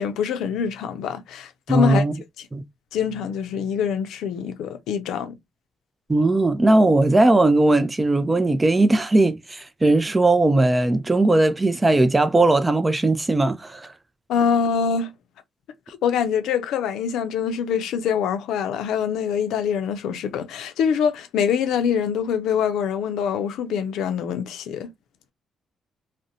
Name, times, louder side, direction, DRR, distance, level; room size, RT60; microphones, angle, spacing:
voice 1, 0.0-2.0 2.4-2.5 2.9-5.3 14.3-15.1 15.9-24.9, left 7 dB, 85° left, 0.4 m, -24 dB
voice 2, 1.7-2.1 2.5-2.6 6.1-13.9, right 2 dB, 20° right, 0.4 m, -18 dB
2.5 x 2.1 x 2.7 m
cardioid pair, 90°, 0 cm